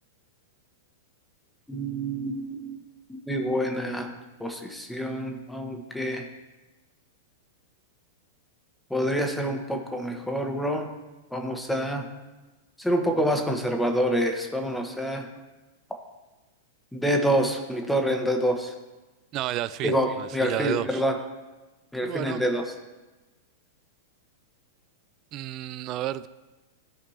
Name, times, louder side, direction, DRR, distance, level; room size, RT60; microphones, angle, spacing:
voice 1, 1.7-2.8 3.1-4.1 4.4-6.3 8.9-10.9 11.3-12.1 12.8-15.3 16.9-18.7 19.8-21.1 21.9-22.6, equal, 5° left, 3 dB, 1.2 m, -27 dB
voice 2, 19.3-21.0 22.0-22.4 25.3-26.3, right 14 dB, 40° right, 16 dB, 0.3 m, -31 dB
15.5 x 5.1 x 2.9 m, 1.1 s
figure-of-eight pair, 100°, 0 cm